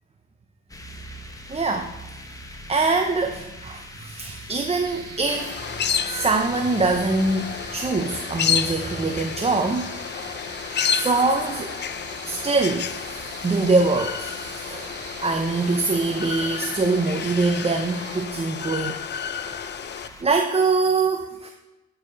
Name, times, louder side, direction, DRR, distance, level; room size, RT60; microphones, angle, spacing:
sound 1, 0.7-20.2, left 1 dB, 10° left, 1.0 m, -43 dB
voice 1, 1.5-1.9 2.7-5.5 6.0-9.9 10.9-11.7 12.2-14.9 15.2-19.0 19.4-19.6 20.2-21.5, right 3 dB, 20° right, 5 dB, 0.7 m, -23 dB
sound 2, 4.8-18.3, right 7 dB, 55° right, 0.8 m, -42 dB
sound 3, 5.3-20.1, left 8 dB, 35° left, 0.5 m, -31 dB
11.0 x 4.8 x 5.2 m, 1.0 s
cardioid pair, 90°, 30 cm